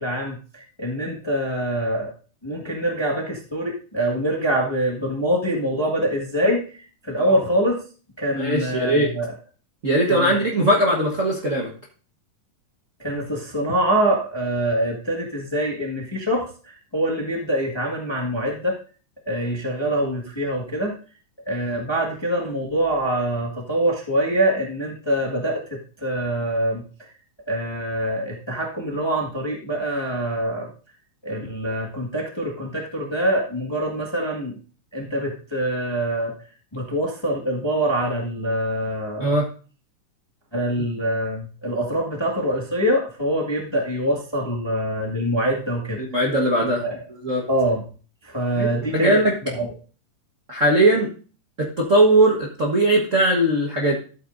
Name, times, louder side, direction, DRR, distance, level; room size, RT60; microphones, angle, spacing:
voice 1, 0.0-2.1 2.4-7.8 8.2-9.3 10.1-10.3 13.0-18.8 19.2-20.9 21.5-27.1 27.5-30.7 31.2-34.6 34.9-36.4 36.7-39.3 40.5-46.0 46.8-46.9 47.5-47.8 48.2-49.7, right 1 dB, 20° left, -1 dB, 0.7 m, -24 dB
voice 2, 8.3-9.1 9.8-11.7 39.2-39.5 46.0-47.4 48.5-49.3 50.5-51.1 51.6-53.9, right 1 dB, 90° right, -3 dB, 0.6 m, -20 dB
13.5 x 8.6 x 2.6 m, 0.38 s
omnidirectional pair, 3.8 m